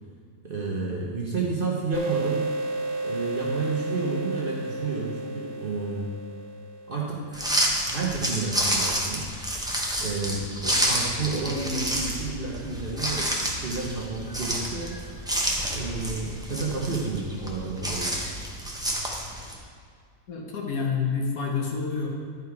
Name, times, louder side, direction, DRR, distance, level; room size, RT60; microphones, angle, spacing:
voice 1, 0.4-2.6 3.0-6.1 6.9-9.3 10.0-14.9 15.7-18.2, right 3 dB, 40° right, -4 dB, 0.9 m, -31 dB
sound 1, 1.9-7.3, right 2 dB, 70° right, 1.5 m, -32 dB
sound 2, 7.3-19.5, equal, 5° right, 0.3 m, -29 dB
voice 2, 20.3-22.1, left 5 dB, 65° left, 0 dB, 1.4 m, -28 dB
10.0 x 4.7 x 4.6 m, 2.1 s
omnidirectional pair, 1.8 m